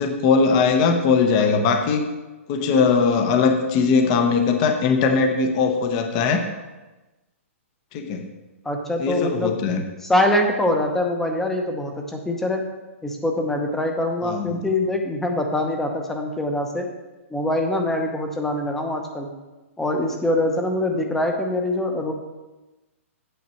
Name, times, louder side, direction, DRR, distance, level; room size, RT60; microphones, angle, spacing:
voice 1, 0.0-2.1 2.5-6.5 7.9-8.3 9.0-9.8 14.2-14.6, left 5 dB, 30° left, 6 dB, 0.8 m, -20 dB
voice 2, 8.6-9.5 10.0-12.6 13.0-16.9 17.3-19.3 19.8-22.1, left 1 dB, 5° left, 3 dB, 0.8 m, -24 dB
8.7 x 7.4 x 4.4 m, 1.1 s
hypercardioid pair, 160°, 8 cm